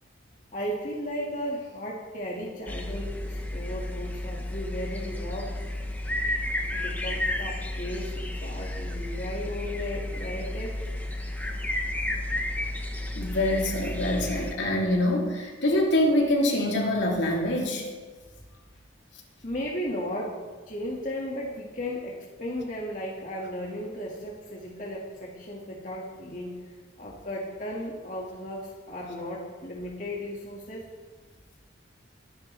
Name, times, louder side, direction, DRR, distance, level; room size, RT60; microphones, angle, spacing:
voice 1, 0.5-5.5 6.7-10.9 19.4-20.4 20.7-26.6 27.0-30.8, equal, 40° left, -3 dB, 2.0 m, -35 dB
sound 1, 2.7-14.5, left 1 dB, 10° left, 1.1 m, -32 dB
voice 2, 13.1-17.9, left 1 dB, 70° left, -2 dB, 3.1 m, -25 dB
23.0 x 11.0 x 3.4 m, 1.4 s
head